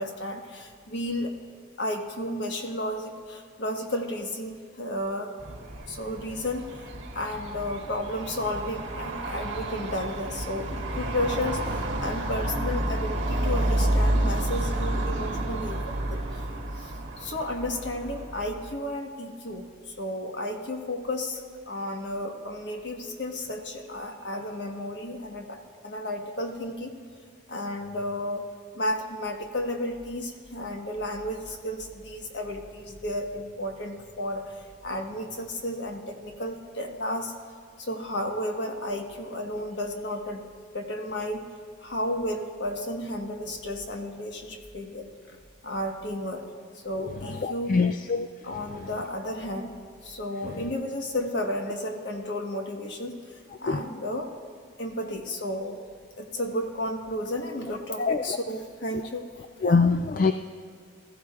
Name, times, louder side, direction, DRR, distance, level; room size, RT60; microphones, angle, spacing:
voice 1, 0.0-1.3 1.8-5.3 5.9-15.8 16.1-16.4 16.8-26.9 27.5-28.5 28.7-37.3 37.8-41.5 41.8-46.5 46.7-47.8 48.4-49.7 50.0-54.3 54.8-55.8 56.2-59.3, left 1 dB, 65° left, 3 dB, 1.4 m, -33 dB
sound 1, 5.4-18.8, right 1 dB, 70° right, 1.5 m, -30 dB
voice 2, 47.4-48.3 53.7-53.8 58.0-58.2 59.6-60.3, left 4 dB, 45° left, 6 dB, 0.3 m, -23 dB
20.0 x 14.5 x 2.5 m, 2.1 s
head